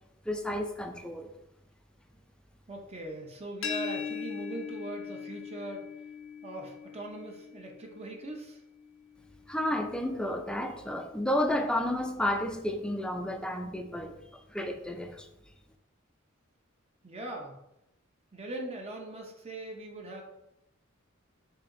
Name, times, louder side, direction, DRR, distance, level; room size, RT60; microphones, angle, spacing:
voice 1, 0.3-1.3 9.5-14.1 14.5-15.3, left 1 dB, 5° left, 5 dB, 0.4 m, -31 dB
voice 2, 2.7-5.8 6.4-8.6 17.0-17.5 18.3-20.2, right 2 dB, 30° right, 1 dB, 0.6 m, -40 dB
sound 1, 3.6-9.4, left 7 dB, 75° left, 0.6 m, -40 dB
6.6 x 2.8 x 2.6 m, 0.86 s
head